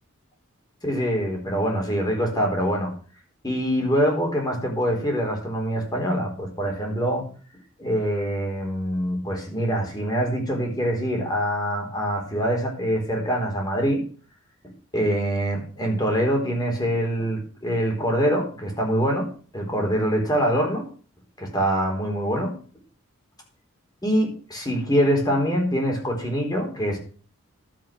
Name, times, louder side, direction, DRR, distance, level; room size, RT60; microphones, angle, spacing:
voice 1, 0.8-2.9 3.4-7.2 7.8-14.0 14.9-19.3 19.5-20.8 21.4-22.5 24.0-27.0, equal, 20° left, 1 dB, 4.1 m, -24 dB
12.5 x 8.1 x 6.2 m, 0.40 s
head